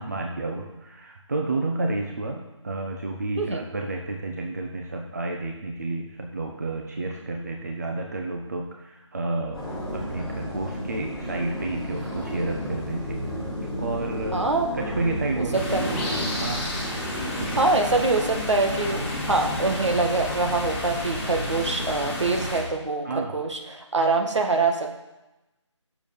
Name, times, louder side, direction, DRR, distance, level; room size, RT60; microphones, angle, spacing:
voice 1, 0.0-9.6 9.9-13.5 13.8-14.4 14.7-16.6 17.3-18.0 18.9-19.0 23.0-23.4, right 2 dB, 35° right, 2 dB, 0.8 m, -31 dB
sound 1, 9.5-22.6, equal, ahead, 3.0 m, -32 dB
voice 2, 14.3-14.7 15.4-15.9 17.6-25.0, right 3 dB, 70° right, 3 dB, 1.9 m, -24 dB
sound 2, 15.5-22.6, left 1 dB, 25° left, 2.3 m, -33 dB
9.1 x 7.0 x 5.3 m, 1.0 s
figure-of-eight pair, 170°, 16 cm